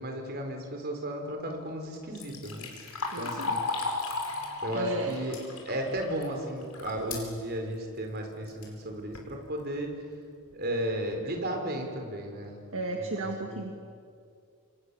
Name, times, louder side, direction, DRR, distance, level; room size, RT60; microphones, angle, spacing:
voice 1, 0.0-3.6 4.6-5.4 5.7-9.9 10.5-12.6 13.0-13.1 13.5-13.6, right 1 dB, 45° right, 3 dB, 4.5 m, -34 dB
Liquid, 1.9-7.0 7.4-7.5 8.4-8.5 8.9-9.3 9.9-10.0 10.5-10.6 11.0-11.3, left 3 dB, 85° left, 4.8 m, -35 dB
voice 2, 3.1-3.6 4.7-5.2 12.7-13.7, right 2 dB, 65° right, 3 dB, 1.9 m, -33 dB
sound 1, 4.1-10.9, left 6 dB, 40° left, 5.8 m, -51 dB
28.5 x 25.5 x 7.1 m, 2.3 s
head